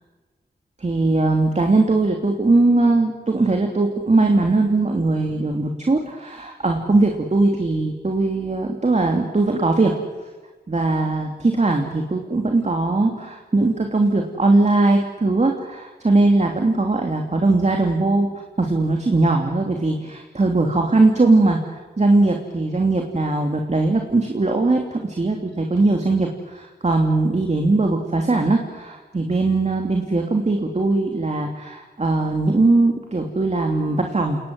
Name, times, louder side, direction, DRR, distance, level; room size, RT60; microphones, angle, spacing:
voice 1, 0.8-10.0 10.7-18.3 18.6-21.6 22.0-34.4, right 2 dB, 40° right, 2 dB, 3.1 m, -20 dB
29.0 x 20.0 x 7.9 m, 1.3 s
wide cardioid pair, 75°, 18 cm